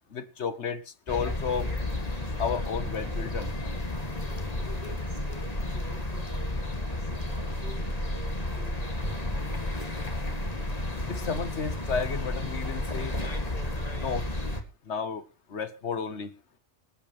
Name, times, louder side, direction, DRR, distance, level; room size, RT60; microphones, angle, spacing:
voice 1, 0.1-1.7 2.4-3.5 11.1-13.2 13.6-14.2 14.8-15.2 15.5-16.3, left 6 dB, 85° left, 1.5 m, -32 dB
sound 1, 1.1-14.6, left 1 dB, 35° left, 2.2 m, -32 dB
voice 2, 4.8-9.6, right 1 dB, 75° right, 5.7 m, -49 dB
26.0 x 8.8 x 3.1 m
omnidirectional pair, 1.1 m